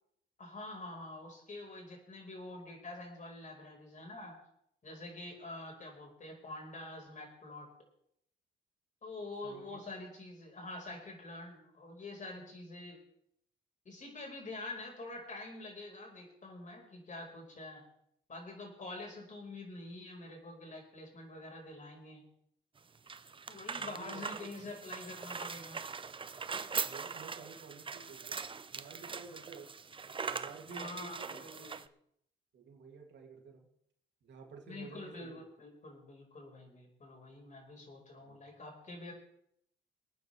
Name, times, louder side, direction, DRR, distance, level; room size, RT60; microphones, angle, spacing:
voice 1, 0.4-4.4 4.8-7.7 9.0-13.0 13.8-17.8 18.3-22.2 23.5-25.8 30.6-31.8 34.7-39.1, left 2 dB, 40° left, 1 dB, 4.9 m, -46 dB
voice 2, 9.4-9.8 23.7-24.8 26.8-28.4 28.7-29.7 30.2-31.4 32.5-33.7 34.2-35.4 38.1-38.4, right 5 dB, 65° right, 1 dB, 2.8 m, -52 dB
sound 1, 22.8-31.9, right 5 dB, 25° right, 0.6 m, -41 dB
25.0 x 9.5 x 3.4 m, 0.72 s
cardioid pair, 90°, 20 cm